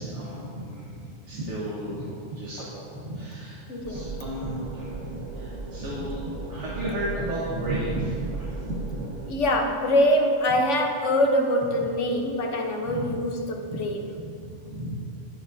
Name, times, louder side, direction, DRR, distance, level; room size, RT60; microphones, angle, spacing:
voice 1, 0.0-9.0 12.8-13.0 13.7-13.9 14.2-15.0, right 1 dB, 65° right, -7 dB, 1.6 m, -33 dB
voice 2, 3.7-4.0 9.3-14.1, left 1 dB, 65° left, 2 dB, 1.3 m, -24 dB
sound 1, 3.8-9.3, right 4 dB, 45° right, 0.6 m, -36 dB
17.5 x 6.1 x 2.7 m, 2.7 s
omnidirectional pair, 1.3 m